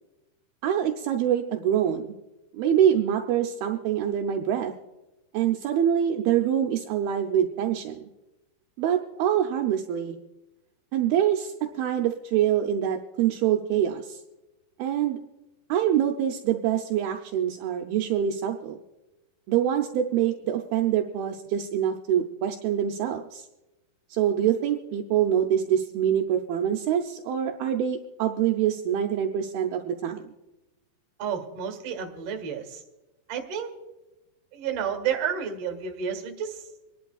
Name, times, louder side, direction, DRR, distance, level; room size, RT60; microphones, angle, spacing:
voice 1, 0.6-2.2 2.5-4.7 5.3-8.1 8.8-10.2 10.9-14.2 14.8-15.2 15.7-18.8 19.5-23.5 24.1-30.3, right 10 dB, 80° right, 3 dB, 2.4 m, -25 dB
voice 2, 31.2-32.8 33.3-33.7 34.5-36.7, right 7 dB, 50° right, 4 dB, 2.1 m, -31 dB
26.5 x 11.0 x 2.4 m, 1.0 s
omnidirectional pair, 4.7 m